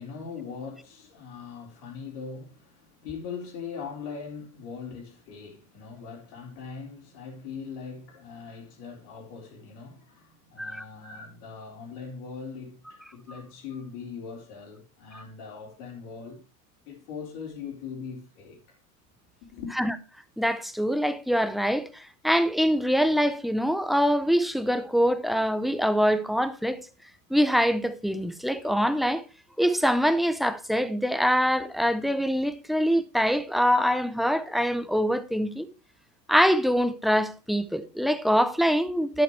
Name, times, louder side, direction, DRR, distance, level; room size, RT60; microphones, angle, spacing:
voice 1, 0.0-16.4 16.9-18.8 19.5-19.7, left 5 dB, 65° left, 4.0 m, -40 dB
voice 2, 20.4-26.9 27.3-29.2 29.6-35.7 36.3-39.2, equal, ahead, 0.5 m, -24 dB
11.0 x 8.7 x 3.2 m
hypercardioid pair, 110°, 48 cm